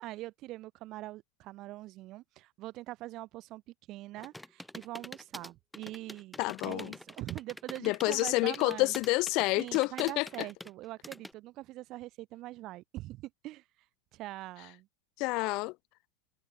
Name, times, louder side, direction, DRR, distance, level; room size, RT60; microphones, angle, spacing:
voice 1, 0.0-3.6 3.9-8.9 9.6-13.6 14.1-14.9, right 17 dB, 40° right, 6.4 m, -43 dB
sound 1, 4.2-11.3, left 1 dB, 5° left, 4.2 m, -46 dB
voice 2, 6.4-6.9 7.8-10.5 15.2-15.7, left 24 dB, 50° left, 0.7 m, -29 dB
supercardioid pair, 145°, 0 cm